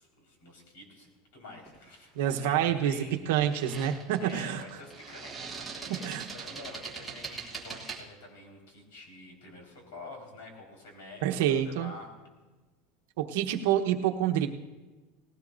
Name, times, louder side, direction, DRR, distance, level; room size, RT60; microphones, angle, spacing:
voice 1, 0.0-3.3 4.2-12.1, left 2 dB, 80° left, 1 dB, 4.5 m, -48 dB
sound 1, 1.7-1.9 3.3-8.0, right 5 dB, 5° right, 1.3 m, -42 dB
voice 2, 2.2-4.6 6.0-6.3 11.2-11.9 13.2-14.5, right 10 dB, 65° right, 5 dB, 1.0 m, -27 dB
19.0 x 16.0 x 2.6 m, 1.2 s
supercardioid pair, 170°, 0 cm